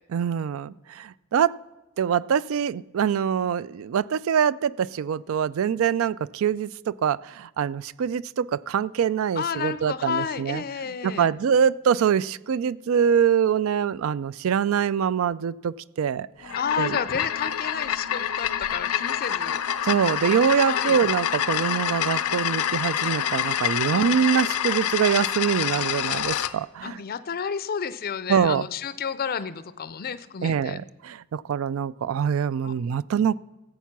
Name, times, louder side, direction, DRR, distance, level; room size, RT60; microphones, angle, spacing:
voice 1, 0.1-1.5 2.0-10.6 11.0-17.0 19.8-27.0 28.3-28.7 30.4-33.4, right 7 dB, 65° right, 20 dB, 0.3 m, -24 dB
voice 2, 9.4-11.3 16.5-19.6 20.6-21.0 23.9-24.2 26.8-30.8 32.6-32.7, left 6 dB, 45° left, 14 dB, 0.5 m, -31 dB
sound 1, 16.4-26.5, left 10 dB, 90° left, 0.6 m, -27 dB
14.5 x 8.2 x 5.9 m, 1.1 s
head